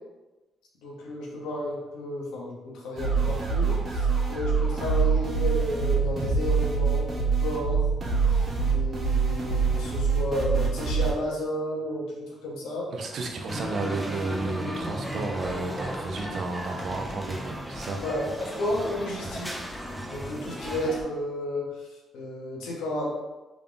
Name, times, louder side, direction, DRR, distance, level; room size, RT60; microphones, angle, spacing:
voice 1, 0.8-7.8 8.3-12.9 18.0-19.6 20.1-21.9 22.1-23.1, equal, 90° left, -3 dB, 1.0 m, -32 dB
sound 1, 3.0-11.1, right 5 dB, 45° right, 1.1 m, -25 dB
voice 2, 12.9-18.0, right 3 dB, 65° right, 2 dB, 0.6 m, -32 dB
sound 2, 13.5-21.0, equal, ahead, 0.6 m, -35 dB
3.7 x 2.3 x 3.8 m, 1.1 s
cardioid pair, 80°, 0 cm